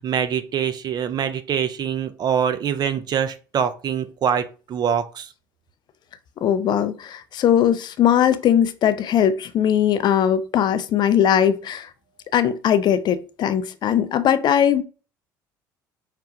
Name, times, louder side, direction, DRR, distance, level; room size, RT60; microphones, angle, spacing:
voice 1, 0.0-5.3, right 8 dB, 40° right, 0.5 m, -24 dB
voice 2, 6.4-11.9 12.3-14.8, left 9 dB, 45° left, 0.4 m, -19 dB
5.8 x 2.2 x 2.6 m
hypercardioid pair, 60°, 10 cm